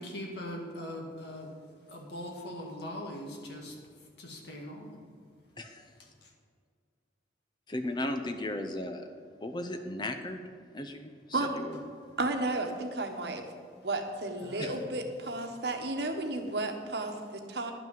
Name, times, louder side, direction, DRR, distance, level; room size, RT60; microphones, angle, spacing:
voice 1, 0.0-1.5 1.9-3.8 4.2-5.0 6.2-6.3 14.4-14.9 16.5-16.6, left 1 dB, 65° left, 2.0 m, -41 dB
voice 2, 5.6-5.9 7.7-9.1 9.4-10.4 10.7-11.8 14.6-14.8, left 1 dB, 25° left, 0.6 m, -36 dB
voice 3, 12.2-13.4 13.8-17.7, right 2 dB, 65° right, 1.2 m, -33 dB
11.0 x 5.9 x 7.5 m
head